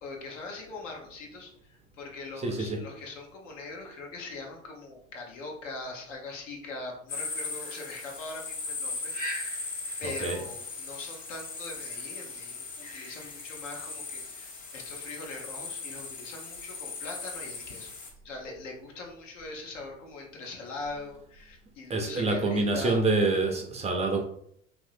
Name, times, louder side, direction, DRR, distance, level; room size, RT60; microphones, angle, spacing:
voice 1, 0.0-9.7 10.0-17.9 18.2-23.0, left 3 dB, 75° left, 1 dB, 0.9 m, -42 dB
voice 2, 2.4-2.8 10.0-10.4 21.9-24.2, right 3 dB, 20° right, 2 dB, 0.4 m, -27 dB
sound 1, 7.1-18.1, left 3 dB, 45° left, 1.3 m, -38 dB
3.0 x 2.7 x 2.5 m, 0.66 s
hypercardioid pair, 75°, 38 cm